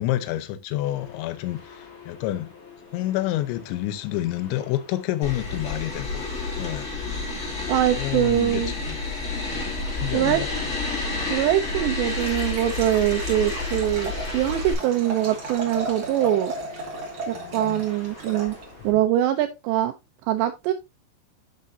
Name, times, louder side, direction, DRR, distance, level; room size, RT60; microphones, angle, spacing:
voice 1, 0.0-2.5 2.9-6.2 6.6-6.9 7.9-9.0 9.9-10.5 17.3-17.9 18.8-19.0, left 14 dB, 75° left, 2.9 m, -29 dB
sound 1, 0.8-18.9, left 5 dB, 55° left, 1.3 m, -48 dB
sound 2, 5.2-14.7, left 3 dB, 35° left, 1.1 m, -30 dB
voice 2, 7.7-8.7 10.1-10.4 11.3-16.5 17.3-18.6 18.8-19.9 20.3-20.7, right 13 dB, 85° right, 2.5 m, -23 dB
Liquid, 12.1-18.9, right 2 dB, 45° right, 1.6 m, -35 dB
9.3 x 6.1 x 2.7 m
omnidirectional pair, 5.7 m